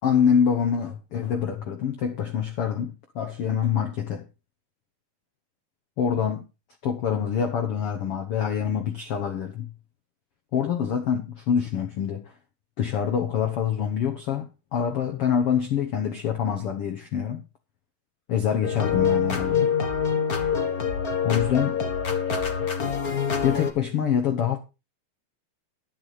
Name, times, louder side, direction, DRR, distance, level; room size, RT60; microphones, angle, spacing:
voice 1, 0.0-2.9 3.1-4.2 6.0-6.4 6.8-9.7 10.5-12.2 12.8-17.4 18.3-19.7 21.2-21.8 23.4-24.6, left 8 dB, 70° left, 1.3 m, -25 dB
sound 1, 18.6-23.7, left 6 dB, 55° left, 1.0 m, -25 dB
12.0 x 8.1 x 4.9 m
omnidirectional pair, 4.3 m